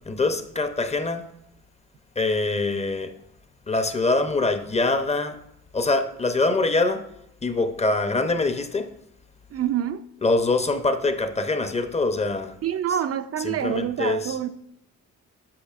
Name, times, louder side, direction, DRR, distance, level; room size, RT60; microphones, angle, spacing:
voice 1, 0.0-1.3 2.2-3.2 3.7-5.4 5.7-7.1 7.4-8.9 10.2-12.6 13.4-14.4, left 3 dB, 20° left, 0.7 m, -24 dB
voice 2, 9.5-10.0 12.6-14.5, right 10 dB, 50° right, 0.4 m, -26 dB
8.6 x 6.0 x 2.5 m
cardioid pair, 80°, 33 cm